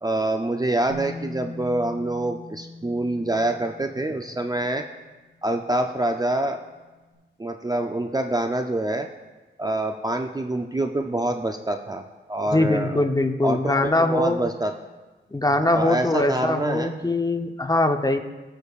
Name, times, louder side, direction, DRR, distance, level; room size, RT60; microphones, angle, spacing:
voice 1, 0.0-4.8 5.4-6.6 7.4-9.1 9.6-12.0 12.3-13.1 13.4-14.7 15.6-16.9, right 1 dB, 20° right, 5 dB, 0.5 m, -26 dB
Bass guitar, 0.9-6.9, left 2 dB, 55° right, 1.6 m, -42 dB
voice 2, 12.5-14.5 15.3-18.2, left 2 dB, 20° left, 6 dB, 0.8 m, -22 dB
18.5 x 6.4 x 2.4 m, 1.2 s
cardioid pair, 60°, 20 cm